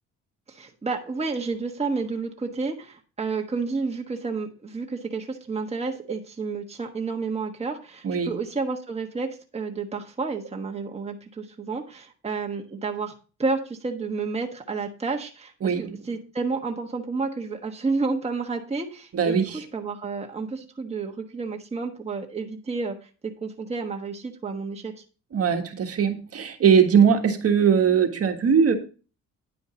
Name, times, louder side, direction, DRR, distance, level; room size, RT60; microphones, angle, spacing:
voice 1, 0.5-13.1 13.4-25.0, right 4 dB, 20° right, 2 dB, 1.3 m, -30 dB
voice 2, 15.6-16.0 19.1-19.6 25.3-28.7, right 7 dB, 50° right, 5 dB, 1.6 m, -20 dB
10.0 x 5.1 x 5.0 m, 0.36 s
cardioid pair, 90°, 30 cm